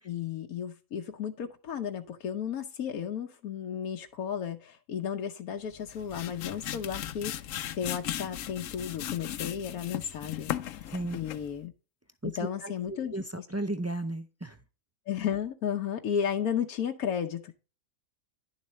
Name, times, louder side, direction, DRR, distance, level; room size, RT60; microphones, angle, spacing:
voice 1, 0.0-11.7 12.2-13.5 15.1-17.5, left 8 dB, 90° left, 1.3 m, -34 dB
sound 1, 5.7-11.6, left 11 dB, 70° left, 1.0 m, -37 dB
voice 2, 10.9-11.2 12.2-14.6, right 1 dB, 25° right, 0.3 m, -35 dB
11.0 x 7.1 x 3.1 m
omnidirectional pair, 1.5 m